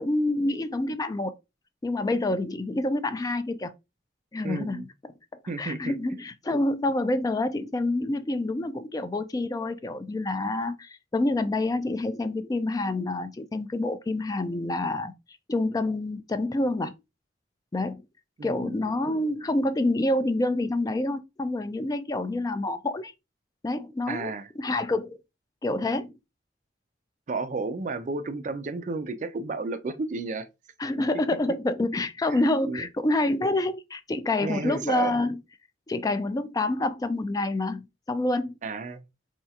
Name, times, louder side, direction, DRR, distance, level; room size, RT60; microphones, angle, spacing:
voice 1, 0.0-1.3 1.8-3.7 4.3-5.1 5.6-15.1 15.5-16.9 17.7-18.0 18.4-23.1 23.6-25.2 25.6-26.1 30.8-35.4 35.9-38.5, left 2 dB, 20° left, 0.3 m, -27 dB
voice 2, 4.4-4.9 5.5-6.0 18.4-18.8 24.1-24.5 27.3-30.5 32.3-32.9 34.4-35.1 38.6-39.0, right 3 dB, 45° right, 0.4 m, -32 dB
4.3 x 2.3 x 2.8 m
head